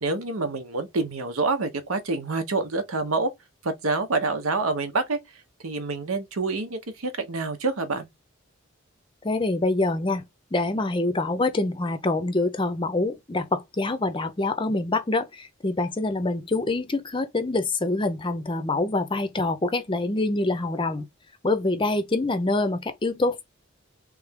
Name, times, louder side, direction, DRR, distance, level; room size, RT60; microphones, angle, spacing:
voice 1, 0.0-3.3 3.6-5.2 5.6-8.1, right 3 dB, 90° right, 0.9 m, -27 dB
voice 2, 9.2-10.2 10.5-21.1 21.4-23.4, left 2 dB, 25° left, 0.5 m, -25 dB
3.3 x 3.2 x 3.5 m
head